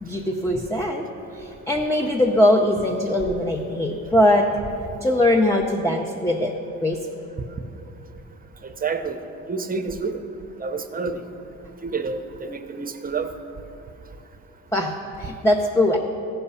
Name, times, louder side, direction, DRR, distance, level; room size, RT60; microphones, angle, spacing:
voice 1, 0.0-1.1 1.4-4.5 5.0-6.5 6.8-7.0 14.7-16.0, left 1 dB, 10° left, 1 dB, 0.7 m, -21 dB
voice 2, 8.6-9.2 9.5-10.2 10.6-11.2 11.8-13.3, right 4 dB, 30° right, 8 dB, 0.7 m, -28 dB
14.5 x 5.7 x 5.6 m, 2.8 s
cardioid pair, 90°, 30 cm